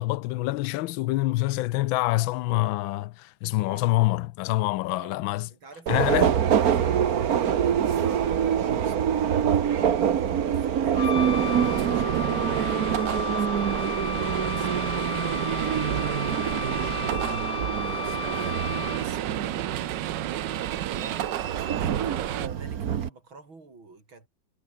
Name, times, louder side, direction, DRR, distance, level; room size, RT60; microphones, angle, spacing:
voice 1, 0.0-5.5 5.9-6.3, left 18 dB, 85° left, 1.3 m, -26 dB
voice 2, 3.5-3.9 4.8-5.2 5.5-11.4 11.7-24.3, right 3 dB, 90° right, 5.8 m, -48 dB
Subway metro underground, 5.9-23.1, right 9 dB, 55° right, 1.5 m, -26 dB
Wind instrument woodwind instrument, 10.9-19.3, left 7 dB, 45° left, 1.5 m, -34 dB
sound 1, 11.1-22.5, right 13 dB, 70° right, 1.4 m, -31 dB
omnidirectional pair, 2.1 m